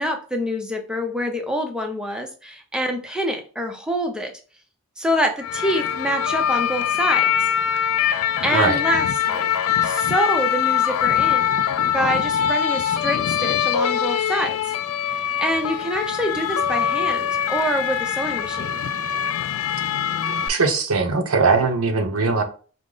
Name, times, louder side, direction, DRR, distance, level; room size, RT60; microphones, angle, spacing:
voice 1, 0.0-4.3 5.0-7.3 8.4-9.5 9.8-11.5 11.9-14.6 15.1-18.7, equal, 5° right, 0.5 m, -26 dB
sound 1, 5.4-20.5, left 9 dB, 75° left, 0.3 m, -23 dB
voice 2, 8.5-8.8 20.5-22.4, right 4 dB, 80° right, 0.7 m, -20 dB
4.9 x 2.1 x 3.7 m
head